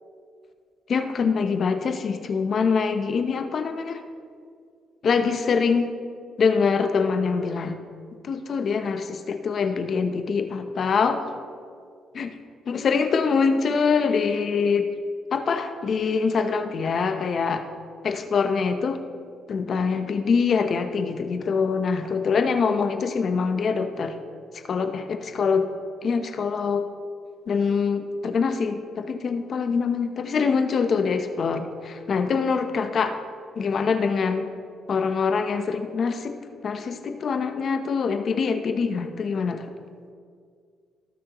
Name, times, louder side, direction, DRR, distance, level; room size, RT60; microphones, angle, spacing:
voice 1, 0.9-4.0 5.0-5.9 6.4-7.8 8.2-11.3 12.1-12.3 12.7-14.9 15.3-17.6 18.0-19.0 19.5-24.2 24.7-25.7 26.0-26.9 27.5-33.2 33.6-34.5 34.9-39.7, left 5 dB, 55° left, 8 dB, 0.8 m, -24 dB
18.0 x 6.3 x 3.0 m, 2.2 s
cardioid pair, 90°, 0 cm